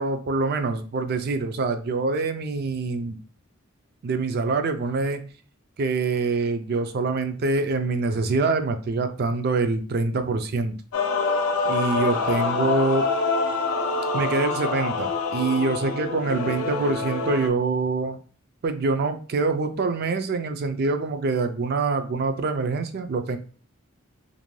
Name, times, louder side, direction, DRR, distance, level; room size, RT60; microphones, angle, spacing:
voice 1, 0.0-3.2 4.0-5.2 5.8-10.8 11.6-13.1 14.1-18.2 18.6-23.4, right 3 dB, 50° right, 8 dB, 0.3 m, -25 dB
Male singing / Female singing / Musical instrument, 10.9-17.5, left 4 dB, 90° left, 0.4 m, -26 dB
2.5 x 2.1 x 3.0 m, 0.40 s
head